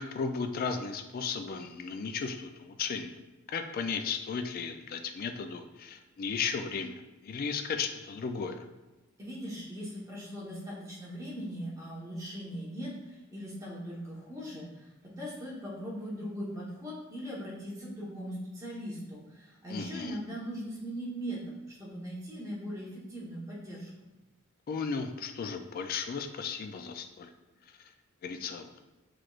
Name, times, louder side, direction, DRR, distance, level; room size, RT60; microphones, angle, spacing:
voice 1, 0.0-3.1 3.5-8.6 19.7-20.2 24.7-27.3 28.2-28.7, left 5 dB, 45° left, 6 dB, 0.3 m, -35 dB
voice 2, 9.2-23.9, equal, 15° right, -5 dB, 1.1 m, -40 dB
5.9 x 3.1 x 2.4 m, 1.1 s
head